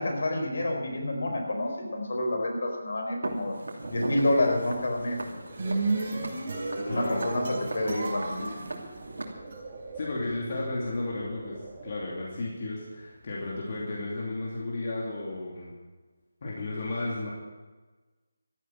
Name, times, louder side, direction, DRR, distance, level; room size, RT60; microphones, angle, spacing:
voice 1, 0.0-3.5 3.9-5.7 6.9-8.7, left 1 dB, 65° left, 2 dB, 4.4 m, -29 dB
Walk footsteps, 3.2-9.2, right 2 dB, 85° right, 2.9 m, -39 dB
sound 1, 3.8-12.1, right 2 dB, 20° right, 2.6 m, -45 dB
sound 2, 5.3-9.6, right 2 dB, 45° right, 4.3 m, -33 dB
voice 2, 6.9-7.3 9.9-15.7 16.4-17.3, left 2 dB, 45° left, -4 dB, 2.8 m, -33 dB
14.0 x 10.0 x 7.7 m, 1.3 s
figure-of-eight pair, 170°, 0 cm